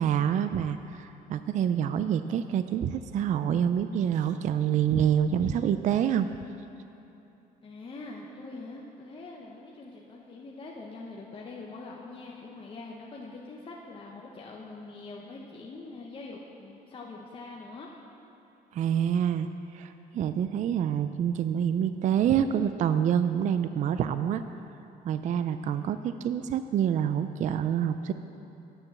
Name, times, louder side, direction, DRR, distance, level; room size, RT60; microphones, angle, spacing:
voice 1, 0.0-6.3 18.7-19.5 19.7-24.4 25.0-28.1, right 9 dB, 45° right, 11 dB, 0.4 m, -27 dB
voice 2, 7.6-17.9, left 3 dB, 30° left, -2 dB, 0.9 m, -43 dB
9.6 x 6.8 x 6.8 m, 2.8 s
cardioid pair, 110°, 17 cm